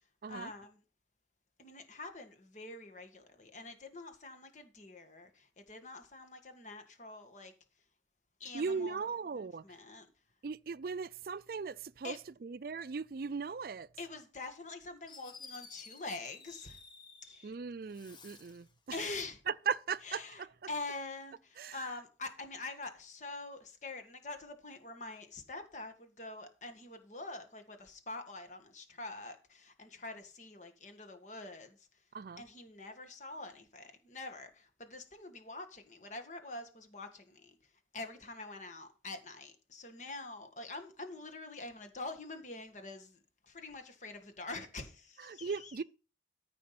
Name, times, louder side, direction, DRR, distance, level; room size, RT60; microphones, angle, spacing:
voice 1, 0.3-0.8 1.6-7.5 8.4-9.0 9.4-10.1 12.0-12.2 14.0-16.8 17.2-17.5 18.9-19.4 20.1-20.4 20.7-31.8 32.4-37.5 37.9-43.2 43.5-45.7, left 2 dB, 45° left, 1.8 m, -45 dB
voice 2, 8.5-9.6 10.4-13.9 17.4-19.1 19.5-20.5 21.6-21.9 32.1-32.4 45.2-45.8, right 5 dB, 55° right, 0.4 m, -38 dB
Fireworks, 15.1-17.5 17.9-18.7, left 4 dB, 25° left, 1.2 m, -53 dB
14.0 x 5.0 x 5.9 m
head